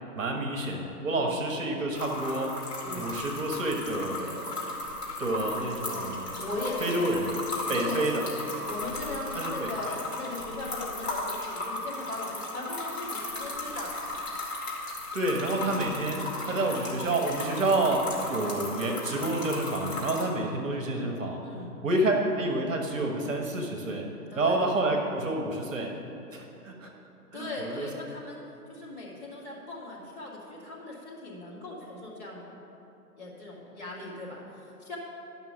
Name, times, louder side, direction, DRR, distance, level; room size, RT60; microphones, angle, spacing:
voice 1, 0.1-2.6 2.9-4.7 5.2-6.4 6.8-7.3 7.7-8.2 9.3-10.0 15.1-21.4 21.8-24.1 24.3-25.9 26.3-26.9 27.3-27.9, right 2 dB, 55° right, 2 dB, 1.3 m, -29 dB
sound 1, 1.9-20.2, left 2 dB, 40° left, 2.5 m, -36 dB
voice 2, 6.4-7.1 7.7-8.3 8.7-13.9 16.5-17.1 21.4-21.7 24.3-24.6 27.3-28.4 28.7-32.5 33.2-35.0, left 2 dB, 25° left, -7 dB, 2.3 m, -38 dB
11.0 x 5.9 x 5.9 m, 2.9 s
figure-of-eight pair, 145°, 47 cm